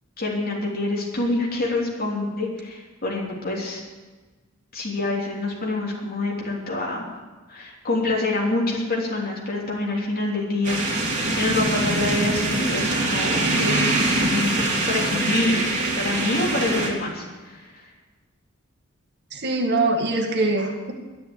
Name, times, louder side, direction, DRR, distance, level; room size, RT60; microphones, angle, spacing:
voice 1, 0.2-3.8 4.7-7.0 7.5-15.6 16.0-17.8, left 2 dB, 45° left, -3 dB, 3.2 m, -26 dB
sound 1, 10.6-16.9, right 2 dB, 35° right, 3.1 m, -23 dB
voice 2, 19.3-20.9, right 2 dB, 55° right, 2 dB, 1.9 m, -23 dB
13.0 x 9.8 x 8.4 m, 1.3 s
head